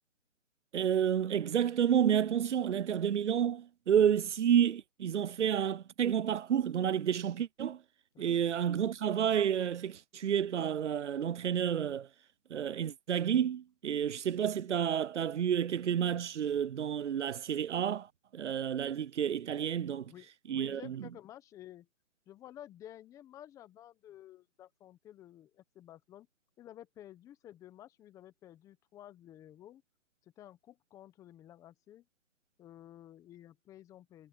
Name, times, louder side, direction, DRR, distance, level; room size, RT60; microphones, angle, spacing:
voice 1, 0.7-7.8 8.2-12.1 12.5-20.1 20.5-21.1, right 9 dB, 60° right, 0.7 m, -30 dB
voice 2, 19.8-21.9 22.3-26.3 26.6-29.8 30.4-32.0 32.6-34.3, left 12 dB, 10° left, 1.1 m, -53 dB
hypercardioid pair, 150°, 39 cm